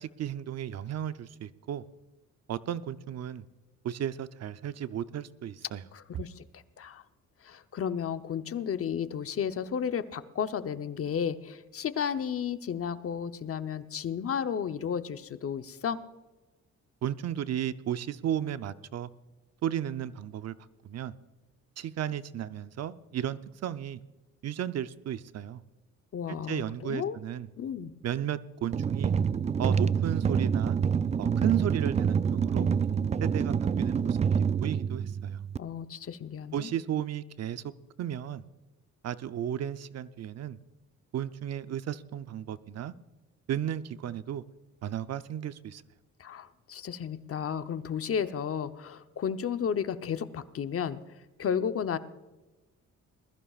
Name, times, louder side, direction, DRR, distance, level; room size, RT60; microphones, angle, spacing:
voice 1, 0.0-1.8 2.5-3.4 3.8-5.8 6.1-6.2 17.0-19.1 19.6-20.5 20.8-21.1 21.8-24.0 24.4-25.6 26.3-27.5 28.0-29.1 29.6-30.8 31.2-32.7 33.2-35.4 36.5-37.6 38.0-38.4 39.0-40.6 41.1-42.9 43.5-44.4 44.8-45.8, right 10 dB, 55° right, 13 dB, 0.7 m, -34 dB
voice 2, 5.9-7.0 7.4-16.0 26.1-27.2 27.6-27.9 35.6-36.7 46.2-51.0 51.4-52.0, left 7 dB, 50° left, 10 dB, 0.8 m, -33 dB
sound 1, 28.7-35.6, right 7 dB, 25° right, 0.3 m, -27 dB
21.0 x 14.0 x 2.4 m, 1.1 s
cardioid pair, 90°, 30 cm